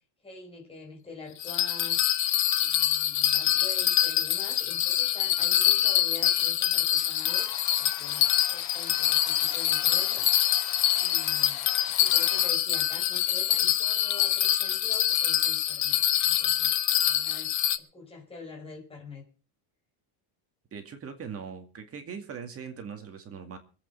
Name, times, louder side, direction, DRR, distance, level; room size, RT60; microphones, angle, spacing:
voice 1, 0.2-2.0 2.6-10.3 10.9-11.7 12.0-19.3, left 3 dB, 10° left, -2 dB, 5.0 m, -46 dB
Bell, 1.4-17.8, left 12 dB, 35° left, 1.0 m, -25 dB
Domestic sounds home sounds, 6.9-12.5, left 10 dB, 70° left, 2.7 m, -44 dB
voice 2, 20.7-23.6, right 6 dB, 30° right, 6 dB, 2.2 m, -40 dB
23.5 x 8.6 x 5.6 m, 0.36 s
cardioid pair, 165°, 47 cm